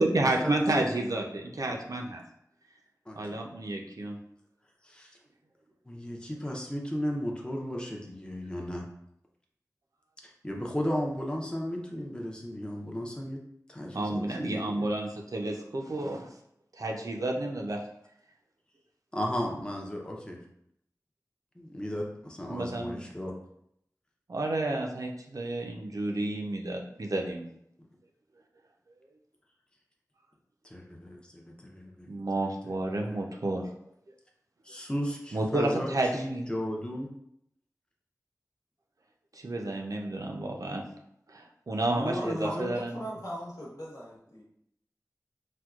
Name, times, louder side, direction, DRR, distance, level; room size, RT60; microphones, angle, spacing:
voice 1, 0.0-2.2 3.2-4.2 13.9-16.3 16.8-17.8 22.5-23.0 24.3-27.4 32.1-33.7 35.3-36.5 39.3-40.8 41.3-42.9, right 2 dB, 65° right, 1 dB, 0.5 m, -30 dB
voice 2, 3.1-3.4 4.8-5.2 5.9-8.8 10.2-13.4 13.7-14.9 19.1-20.4 21.6-23.4 30.6-32.1 33.1-33.2 34.6-37.1 42.0-42.8, equal, 15° left, -1 dB, 0.6 m, -35 dB
voice 3, 42.1-44.4, equal, 60° left, -6 dB, 1.2 m, -39 dB
4.3 x 2.2 x 2.4 m, 0.74 s
wide cardioid pair, 55°, 6 cm